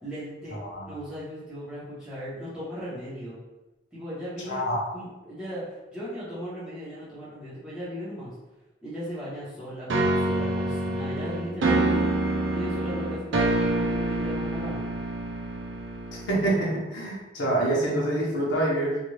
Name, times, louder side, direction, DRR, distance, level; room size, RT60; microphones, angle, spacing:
voice 1, 0.0-0.6 0.8-3.4 3.9-4.6 4.9-8.3 8.8-12.1 12.5-14.9, equal, 5° right, -11 dB, 1.1 m, -37 dB
voice 2, 4.5-4.8 16.3-19.0, right 1 dB, 80° left, -4 dB, 0.9 m, -26 dB
sound 1, 9.9-16.7, right 2 dB, 80° right, 0.5 m, -27 dB
2.6 x 2.6 x 3.1 m, 1.0 s
head